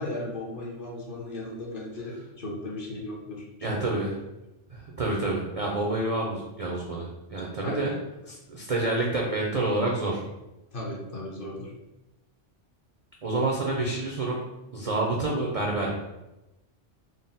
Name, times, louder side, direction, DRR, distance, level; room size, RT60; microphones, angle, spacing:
voice 1, 0.0-4.1 7.6-7.9 10.7-11.7, left 1 dB, 50° left, -3 dB, 0.9 m, -36 dB
voice 2, 3.6-4.1 4.7-7.9 8.3-10.2 13.2-14.4 14.7-15.9, right 2 dB, 55° right, -2 dB, 0.4 m, -28 dB
3.8 x 2.1 x 3.9 m, 0.97 s
omnidirectional pair, 1.2 m